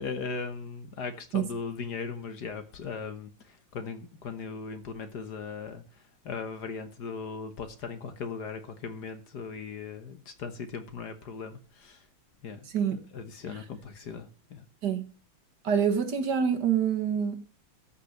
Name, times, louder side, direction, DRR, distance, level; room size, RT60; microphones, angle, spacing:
voice 1, 0.0-12.1 12.4-12.7 13.1-14.7, left 5 dB, 55° left, 1.6 m, -38 dB
voice 2, 15.6-17.4, right 7 dB, 55° right, 1.8 m, -26 dB
14.0 x 5.8 x 6.5 m
omnidirectional pair, 2.2 m